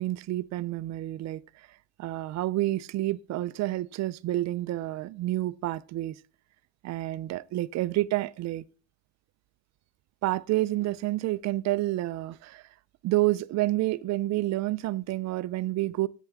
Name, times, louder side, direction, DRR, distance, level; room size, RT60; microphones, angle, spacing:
voice 1, 0.0-6.2 6.8-8.6 10.2-12.7 13.0-16.1, right 16 dB, 45° right, 0.4 m, -29 dB
10.5 x 8.3 x 3.5 m
cardioid pair, 130°, 42 cm